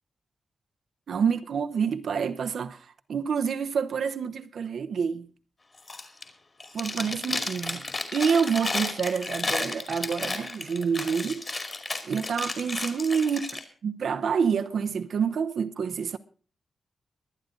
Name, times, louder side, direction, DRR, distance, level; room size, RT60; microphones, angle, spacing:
voice 1, 1.1-5.3 6.7-7.9 8.1-11.4 12.0-16.2, right 6 dB, 70° right, 0.8 m, -28 dB
Chewing mastication, 5.8-6.3 6.6-13.6, left 3 dB, 30° left, 2.5 m, -33 dB
23.0 x 9.5 x 3.8 m
wide cardioid pair, 155°, 0 cm